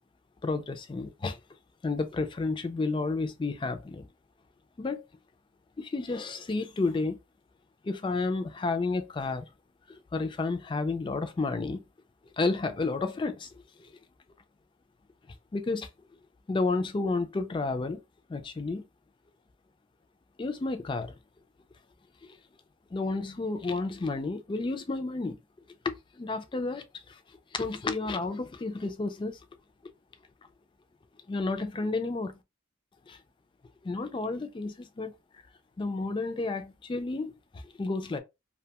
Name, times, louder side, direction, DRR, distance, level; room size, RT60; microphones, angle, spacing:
voice 1, 0.4-1.4 1.8-4.1 4.8-5.0 5.8-7.2 7.8-9.5 9.9-11.8 12.4-13.5 13.8-13.9 15.5-15.9 16.5-18.0 18.3-18.8 20.4-21.1 22.9-25.4 25.8-27.2 27.5-29.4 31.3-32.4 33.1-33.2 33.8-35.1 35.8-37.3 37.6-38.2, left 3 dB, 25° left, 0.3 m, -31 dB
2.6 x 2.2 x 2.8 m
head